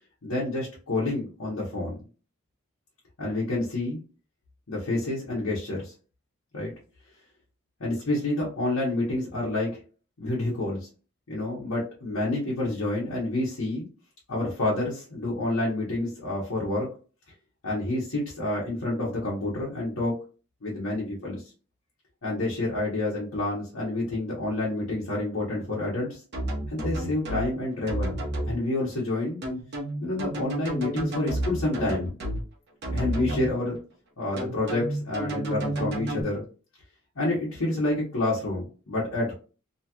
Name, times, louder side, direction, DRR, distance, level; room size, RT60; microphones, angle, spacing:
voice 1, 0.2-2.0 3.2-4.0 4.7-5.9 6.5-6.7 7.8-9.8 10.2-10.9 11.3-13.8 14.3-16.9 17.6-20.1 20.6-21.4 22.2-26.2 26.7-28.2 28.5-29.4 30.0-32.1 32.9-33.8 34.2-36.4 37.2-39.3, left 2 dB, 85° left, -6 dB, 1.0 m, -28 dB
sound 1, 26.3-27.5 27.9-28.5 29.4-32.4 32.8-33.5 34.4-36.2, right 1 dB, 55° right, 0.9 m, -30 dB
3.0 x 2.9 x 2.3 m, 0.36 s
head